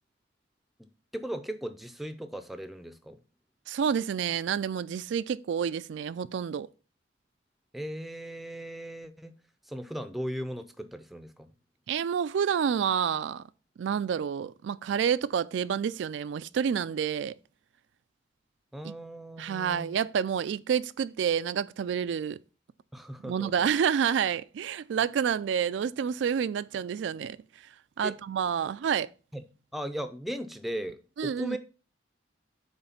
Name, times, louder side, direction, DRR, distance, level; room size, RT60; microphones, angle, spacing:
voice 1, 1.1-3.2 7.7-9.3 9.7-11.5 18.7-19.9 22.9-23.7 28.0-28.1 28.6-28.7 29.3-29.4 29.7-31.6, equal, ahead, 0.5 m, -37 dB
voice 2, 3.7-6.7 11.9-13.4 13.8-17.4 18.8-18.9 19.4-22.4 23.2-29.1 31.2-31.6, right 7 dB, 70° right, 0.3 m, -29 dB
8.1 x 3.2 x 5.7 m
head